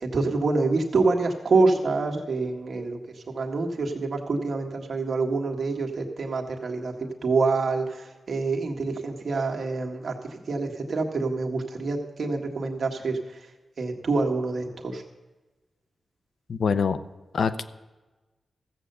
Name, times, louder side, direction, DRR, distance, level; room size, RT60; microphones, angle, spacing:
voice 1, 0.0-3.0 3.3-10.2 10.5-13.2 13.8-15.0, right 3 dB, 60° right, 2 dB, 1.7 m, -26 dB
voice 2, 16.5-17.0 17.3-17.6, left 6 dB, 70° left, 13 dB, 0.6 m, -24 dB
15.0 x 7.8 x 6.8 m, 1.2 s
wide cardioid pair, 95°, 0 cm